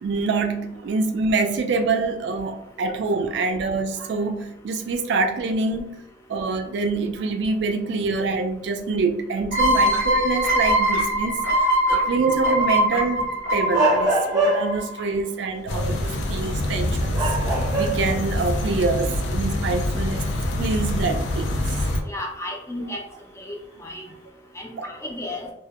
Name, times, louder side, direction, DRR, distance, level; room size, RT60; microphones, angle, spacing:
voice 1, 0.0-5.9 6.3-11.4 11.9-17.4 17.7-20.2 20.6-22.1 24.8-24.9, right 3 dB, 70° right, 5 dB, 0.3 m, -25 dB
sound 1, 9.5-15.0, equal, 70° left, 1.0 m, -22 dB
sound 2, 13.7-14.9 16.4-16.6 17.1-18.2 18.6-18.7 21.2-21.3 22.8-23.1, right 2 dB, 20° right, 0.6 m, -23 dB
sound 3, 15.7-22.0, left 1 dB, 90° left, 0.4 m, -25 dB
voice 2, 22.1-23.0 23.4-23.5 23.8-24.0 24.6-25.5, left 1 dB, 15° left, 0 dB, 0.4 m, -33 dB
2.2 x 2.0 x 2.8 m, 0.88 s
head